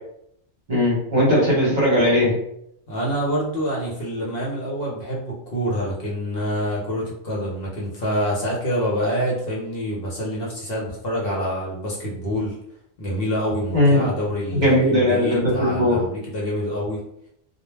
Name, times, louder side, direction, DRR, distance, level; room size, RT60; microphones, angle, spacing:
voice 1, 0.7-2.3 13.7-14.1 14.5-16.0, left 1 dB, 45° right, -5 dB, 0.9 m, -18 dB
voice 2, 2.9-12.5 13.0-17.0, equal, 55° left, -4 dB, 0.9 m, -26 dB
2.2 x 2.1 x 3.1 m, 0.74 s
omnidirectional pair, 1.2 m